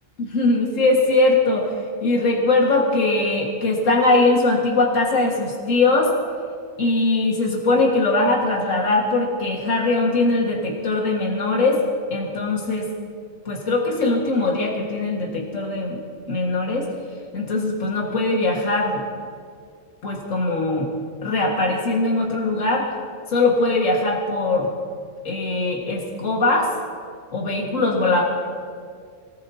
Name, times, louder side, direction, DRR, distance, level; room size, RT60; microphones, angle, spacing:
voice 1, 0.2-1.7 2.0-6.1 6.8-11.8 12.1-12.9 13.5-16.0 16.3-16.9 17.3-19.0 20.0-20.9 21.2-22.9 23.3-24.7 25.2-26.7 27.3-28.2, left 2 dB, 75° left, -2 dB, 2.3 m, -21 dB
25.0 x 19.0 x 2.9 m, 2.1 s
omnidirectional pair, 1.3 m